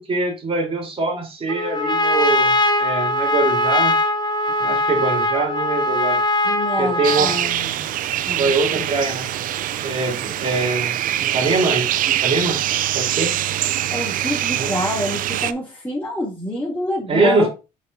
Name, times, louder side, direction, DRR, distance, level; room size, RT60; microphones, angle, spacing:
voice 1, 0.1-3.9 4.6-6.2 6.8-7.3 8.1-9.3 9.8-12.6 12.9-13.3 14.5-14.7 17.1-17.5, right 3 dB, 35° right, 0 dB, 3.8 m, -23 dB
Trumpet, 1.5-7.5, left 1 dB, 25° left, 1.1 m, -21 dB
voice 2, 6.4-7.9 8.3-8.9 13.9-17.5, equal, 10° left, -6 dB, 2.7 m, -27 dB
sound 1, 7.0-15.5, right 12 dB, 60° right, 0.5 m, -23 dB
6.2 x 5.7 x 2.7 m, 0.27 s
supercardioid pair, 75°, 16 cm